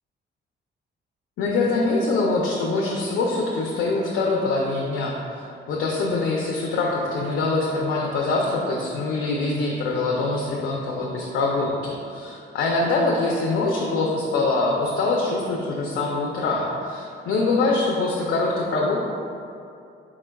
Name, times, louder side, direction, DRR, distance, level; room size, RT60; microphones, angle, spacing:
voice 1, 1.4-19.0, left 3 dB, 85° left, -3 dB, 0.5 m, -24 dB
4.7 x 4.3 x 2.2 m, 2.5 s
cardioid pair, 140°, 20 cm